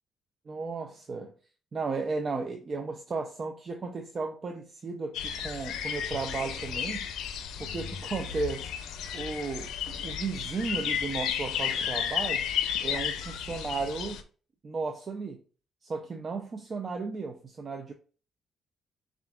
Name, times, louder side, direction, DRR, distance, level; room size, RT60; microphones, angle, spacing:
voice 1, 0.5-1.3 1.7-7.1 7.6-8.7 9.1-12.5 12.8-14.2 14.6-15.4 15.8-17.9, right 4 dB, 40° right, 0.5 m, -34 dB
sound 1, 5.1-14.2, left 8 dB, 85° left, 0.4 m, -33 dB
7.0 x 2.4 x 2.3 m
cardioid pair, 90°, 0 cm